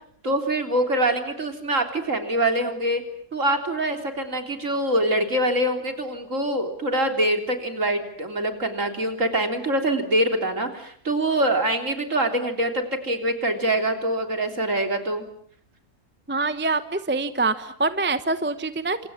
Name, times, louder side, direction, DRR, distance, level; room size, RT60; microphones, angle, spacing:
voice 1, 0.2-3.0 3.3-15.3, right 1 dB, 55° right, 5 dB, 3.9 m, -24 dB
voice 2, 16.3-19.1, right 3 dB, 10° right, 11 dB, 1.0 m, -25 dB
29.0 x 27.0 x 7.3 m, 0.62 s
omnidirectional pair, 1.6 m